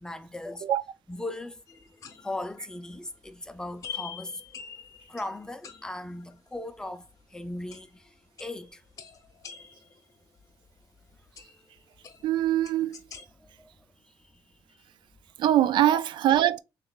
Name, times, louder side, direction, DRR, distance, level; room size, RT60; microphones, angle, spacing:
voice 1, 0.0-0.6 1.1-1.6 2.2-4.4 5.1-7.0 7.3-8.0 8.4-8.8 13.4-13.5 15.9-16.0, left 2 dB, 10° left, 0.4 m, -37 dB
sound 1, 1.7-3.3 3.8-6.8 7.1-7.2 7.7-8.1 8.4-10.4 11.4-13.3, left 8 dB, 40° left, 0.8 m, -45 dB
voice 2, 12.2-13.0 15.4-16.6, right 12 dB, 65° right, 0.3 m, -23 dB
6.4 x 3.0 x 2.4 m
cardioid pair, 160°, 9 cm